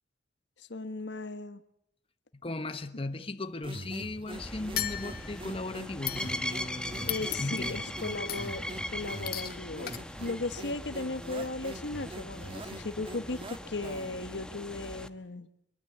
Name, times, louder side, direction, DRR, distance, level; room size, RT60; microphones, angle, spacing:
voice 1, 0.7-1.6 7.1-9.9 10.2-15.5, left 2 dB, 75° left, 1.3 m, -36 dB
voice 2, 2.4-7.8, left 2 dB, 30° left, 1.1 m, -37 dB
sound 1, 3.6-14.3, right 1 dB, 30° right, 1.5 m, -44 dB
sound 2, 4.3-15.1, left 1 dB, 5° left, 1.1 m, -40 dB
sound 3, 4.8-5.5 6.1-6.7 7.1-7.8 8.3-8.6 9.3-9.6 9.9-10.0, left 12 dB, 55° left, 1.4 m, -37 dB
23.5 x 22.5 x 8.5 m
head